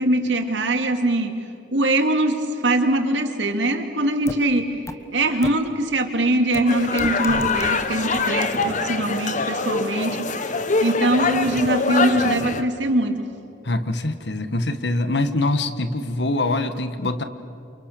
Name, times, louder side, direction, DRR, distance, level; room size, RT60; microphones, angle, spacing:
voice 1, 0.0-1.4 1.7-4.8 5.1-10.5 10.8-13.3, right 1 dB, 75° right, 5 dB, 2.7 m, -22 dB
sound 1, 4.3-4.4 4.9-5.0 5.4-5.5 6.5-6.6 7.0-7.7 8.1-8.2, left 1 dB, 15° left, 1.3 m, -31 dB
sound 2, 6.7-12.6, left 4 dB, 40° left, 1.3 m, -24 dB
voice 2, 13.6-17.2, left 2 dB, 65° left, 10 dB, 1.6 m, -24 dB
29.5 x 28.0 x 6.9 m, 2.8 s
head